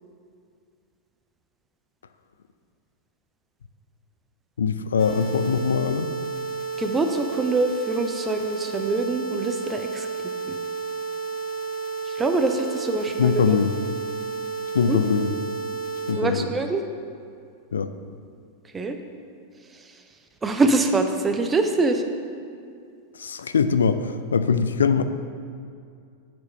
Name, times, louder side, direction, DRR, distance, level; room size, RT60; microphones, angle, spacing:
voice 1, 4.6-6.1 13.2-13.7 14.7-15.3 16.1-16.5 17.7-17.9 23.2-25.0, left 6 dB, 70° left, 11 dB, 0.3 m, -22 dB
sound 1, 5.0-16.1, right 5 dB, 20° left, 2.1 m, -31 dB
voice 2, 6.8-10.1 10.5-10.6 12.1-13.6 14.9-15.0 16.2-16.8 18.7-19.0 20.4-22.0, right 3 dB, 15° right, 6 dB, 0.6 m, -24 dB
8.0 x 5.2 x 5.6 m, 2.3 s
figure-of-eight pair, 90°, 0 cm